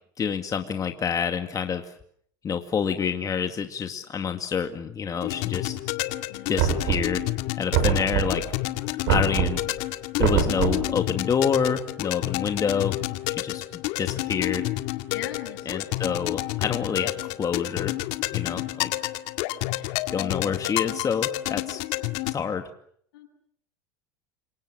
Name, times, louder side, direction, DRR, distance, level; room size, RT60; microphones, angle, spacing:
voice 1, 0.2-1.9 2.4-5.8 6.5-7.2 7.6-8.4 9.1-9.6 10.2-13.0 13.3-14.6 15.7-18.0 18.3-18.9 20.1-21.8 22.3-22.6, left 7 dB, 30° left, 6 dB, 2.2 m, -27 dB
sound 1, 5.2-22.3, left 18 dB, 65° left, 1.9 m, -30 dB
Knock, 6.6-7.3 7.7-8.5 9.1-9.7 10.2-10.9, right 9 dB, 70° right, 5.5 m, -24 dB
voice 2, 15.1-15.8 19.7-19.9 23.1-23.3, left 10 dB, 80° left, 5 dB, 7.8 m, -39 dB
28.0 x 24.5 x 7.6 m, 0.66 s
hypercardioid pair, 95°, 12 cm